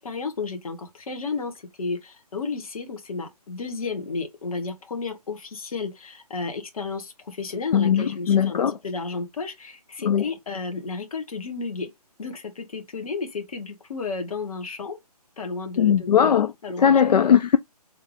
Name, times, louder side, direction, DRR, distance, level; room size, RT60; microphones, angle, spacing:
voice 1, 0.0-1.5 1.8-11.9 12.2-15.0 15.4-16.3 16.6-16.9 17.2-17.3, left 4 dB, 60° left, 1.4 m, -32 dB
voice 2, 7.7-8.8 10.0-10.2 15.8-17.6, left 8 dB, 90° left, 0.4 m, -19 dB
3.3 x 2.5 x 3.3 m
hypercardioid pair, 155°, 20 cm